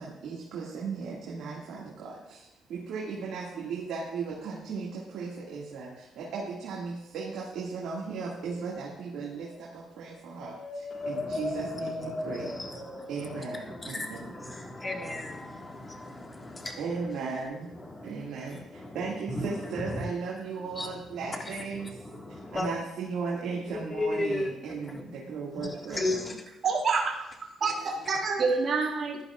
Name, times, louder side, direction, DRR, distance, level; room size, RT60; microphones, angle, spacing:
voice 1, 0.0-12.6 13.1-14.2 16.8-22.0 22.5-26.3 28.5-28.6, right 5 dB, 80° right, 1.9 m, -36 dB
sound 1, 9.1-9.6 10.0-14.1 14.6-16.0 17.3-17.4, left 2 dB, 45° left, 3.5 m, -39 dB
voice 2, 10.9-17.1 17.7-20.0 20.6-22.7 23.7-26.4, left 2 dB, 25° left, 1.6 m, -37 dB
voice 3, 26.6-27.1 27.6-29.2, right 4 dB, 50° right, 1.6 m, -27 dB
14.5 x 11.0 x 2.4 m
cardioid pair, 90°, 0 cm